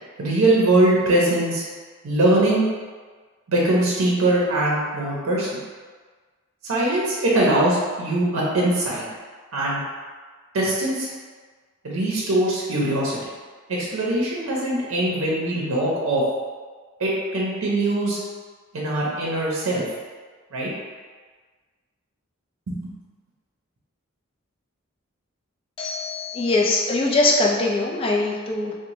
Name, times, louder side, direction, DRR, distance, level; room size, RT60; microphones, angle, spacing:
voice 1, 0.2-1.6 2.0-2.6 3.5-5.5 6.6-9.0 9.5-9.8 10.5-11.1 11.8-13.2 13.8-16.2 17.0-18.2 18.7-19.8 20.5-20.7 22.7-22.9, right 1 dB, 80° right, -5 dB, 0.6 m, -21 dB
voice 2, 25.8-28.7, left 2 dB, 25° left, -2 dB, 0.3 m, -22 dB
2.7 x 2.1 x 3.0 m, 1.5 s
head